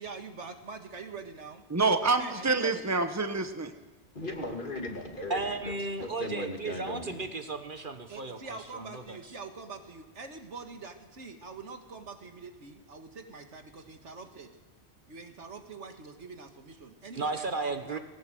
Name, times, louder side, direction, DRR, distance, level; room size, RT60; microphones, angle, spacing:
voice 1, 0.0-1.6 2.2-2.9 8.1-14.5 15.1-18.0, right 4 dB, 85° right, 6 dB, 2.1 m, -44 dB
voice 2, 1.7-3.7, right 3 dB, 15° right, 8 dB, 1.1 m, -27 dB
voice 3, 4.1-7.3, left 1 dB, 45° left, 2 dB, 2.7 m, -38 dB
voice 4, 5.3-9.2 17.1-18.0, right 3 dB, 50° right, 7 dB, 1.4 m, -34 dB
19.5 x 18.0 x 7.8 m, 1.2 s
omnidirectional pair, 1.2 m